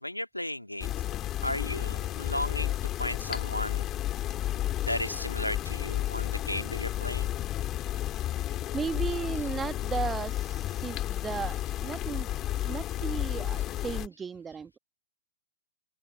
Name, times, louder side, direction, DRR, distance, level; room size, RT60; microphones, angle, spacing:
voice 1, 0.0-0.9 1.4-2.7 3.0-3.9 4.8-7.3, left 1 dB, 90° left, 1.9 m, -34 dB
sound 1, 0.8-14.1, left 13 dB, 25° left, 2.8 m, -32 dB
voice 2, 8.4-12.3 12.6-14.8, right 6 dB, 15° right, 1.3 m, -35 dB
open air
figure-of-eight pair, 110°, 0 cm